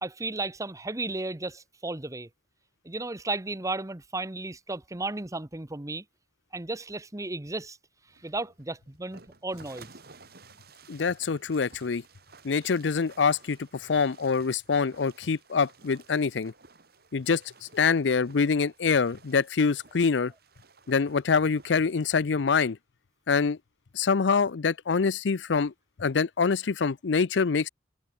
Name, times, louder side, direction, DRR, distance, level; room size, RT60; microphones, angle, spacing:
voice 1, 0.0-2.3 2.8-6.0 6.5-7.8 8.2-9.9, right 2 dB, 20° right, 1.0 m, -34 dB
sound 1, 8.1-22.2, right 4 dB, 60° right, 4.6 m, -55 dB
voice 2, 10.9-12.0 12.4-16.5 17.1-17.4 17.7-20.3 20.9-22.8 23.3-23.6 23.9-25.7 26.0-27.7, left 5 dB, 85° left, 0.6 m, -25 dB
head